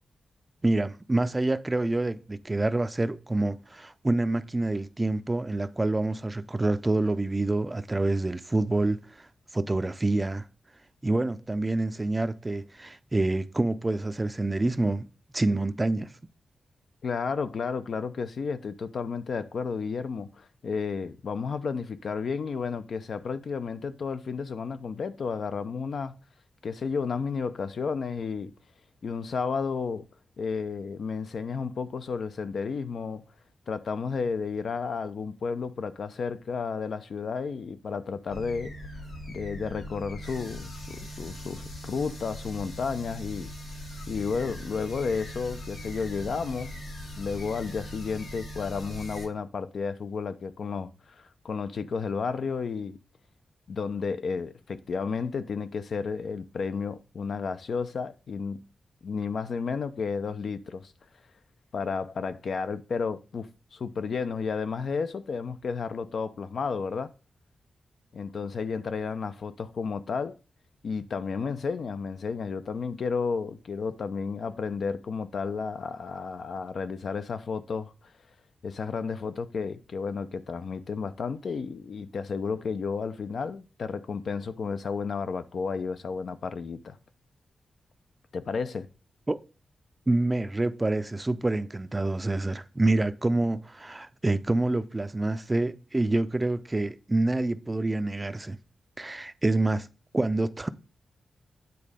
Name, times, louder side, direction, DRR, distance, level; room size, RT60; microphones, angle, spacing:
voice 1, 0.6-9.0 9.5-10.4 11.0-15.1 15.3-16.1 89.3-89.4 90.1-98.6 99.0-99.9 100.1-100.7, right 2 dB, 20° right, 0.5 m, -27 dB
voice 2, 17.0-26.1 26.6-28.5 29.0-30.0 30.4-33.2 33.7-38.7 39.3-43.5 44.1-46.7 47.1-53.0 53.7-58.6 59.0-60.9 61.7-67.1 68.1-70.4 70.8-77.9 78.6-87.0 88.3-88.9, left 5 dB, 65° left, 0.7 m, -32 dB
sound 1, 38.3-49.3, equal, 90° left, 5.4 m, -40 dB
9.5 x 4.1 x 5.0 m
wide cardioid pair, 115°, 0 cm